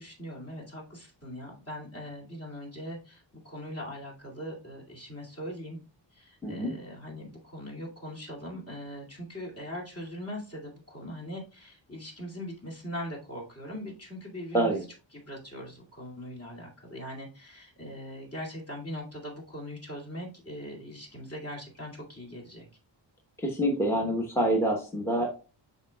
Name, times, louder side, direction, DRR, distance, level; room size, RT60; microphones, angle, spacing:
voice 1, 0.0-5.8 6.1-14.8 15.1-22.7, equal, 30° left, -3 dB, 2.3 m, -41 dB
voice 2, 6.4-6.7 14.5-14.8 23.4-25.3, right 1 dB, 5° left, 1 dB, 1.0 m, -26 dB
10.5 x 4.3 x 2.2 m, 0.35 s
wide cardioid pair, 145°, 45 cm